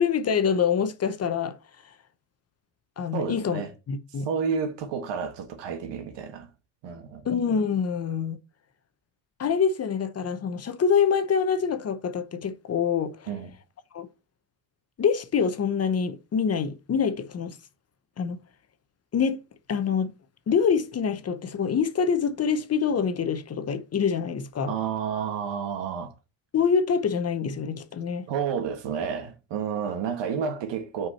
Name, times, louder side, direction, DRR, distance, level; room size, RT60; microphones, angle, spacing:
voice 1, 0.0-1.6 3.0-3.6 3.9-4.3 7.2-8.4 9.4-13.3 13.9-14.1 15.0-17.6 18.2-18.4 19.1-19.4 19.7-20.1 20.5-24.8 26.5-28.3, left 6 dB, 35° left, 0.8 m, -25 dB
voice 2, 3.1-3.7 4.3-6.5 6.8-7.2 13.3-13.5 24.7-26.1 28.3-31.1, right 7 dB, 75° right, 1.8 m, -30 dB
5.9 x 4.7 x 5.6 m
cardioid pair, 135°, 43 cm